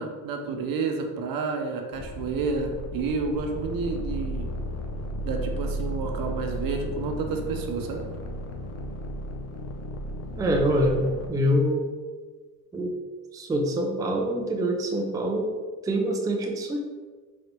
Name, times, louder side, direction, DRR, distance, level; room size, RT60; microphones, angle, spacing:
voice 1, 0.0-4.5 5.2-8.0, right 4 dB, 70° right, 4 dB, 0.7 m, -30 dB
sound 1, 1.9-11.3, equal, 45° left, 0.6 m, -34 dB
voice 2, 10.4-11.9 12.7-12.9 13.3-15.5 15.8-16.8, equal, 10° right, 1 dB, 0.4 m, -25 dB
3.9 x 3.2 x 3.0 m, 1.4 s
cardioid pair, 120°, 36 cm